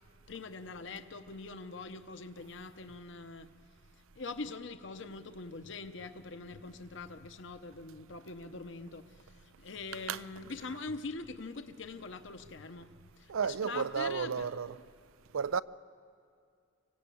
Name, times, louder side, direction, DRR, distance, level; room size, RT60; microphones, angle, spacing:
voice 1, 0.3-3.5 4.2-14.6, left 3 dB, 65° left, 0.8 m, -43 dB
voice 2, 13.3-14.8 15.3-15.6, right 6 dB, 85° right, 0.5 m, -32 dB
25.5 x 16.5 x 8.4 m
head